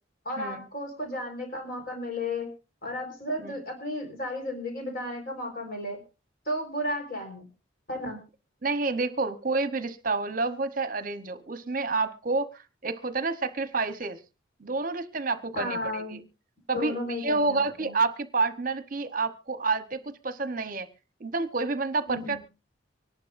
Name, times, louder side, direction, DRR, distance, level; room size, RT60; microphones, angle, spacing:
voice 1, 0.2-2.5 2.8-6.0 6.5-7.4 7.9-8.2 15.5-16.2 16.7-18.0 22.1-22.4, left 1 dB, 50° left, 4.4 m, -33 dB
voice 2, 8.6-14.2 14.6-16.2 16.7-20.9 21.2-22.4, right 3 dB, 45° right, 1.0 m, -29 dB
24.5 x 11.0 x 2.6 m
head